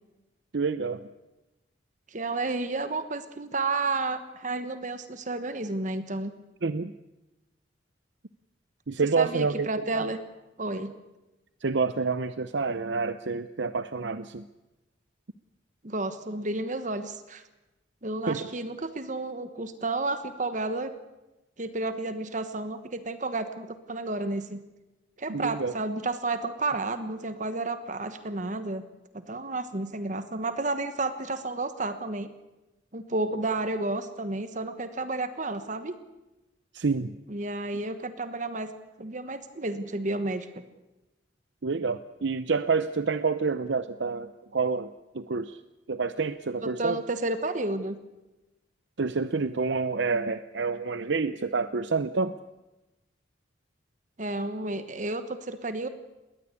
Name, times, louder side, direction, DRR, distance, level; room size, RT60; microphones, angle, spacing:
voice 1, 0.5-1.0 6.6-6.9 8.9-9.7 9.9-10.1 11.6-14.5 18.3-18.5 25.3-25.7 36.7-37.2 41.6-45.6 45.9-47.0 49.0-52.4, right 4 dB, 70° right, 12 dB, 0.7 m, -28 dB
voice 2, 2.1-6.3 9.2-10.2 10.6-10.9 15.8-17.4 18.0-20.9 21.6-24.6 25.2-28.8 29.1-32.3 32.9-35.9 37.3-38.7 39.0-40.5 46.6-48.0 54.2-55.9, right 2 dB, 45° right, 10 dB, 1.2 m, -31 dB
21.0 x 18.5 x 8.3 m, 1.0 s
head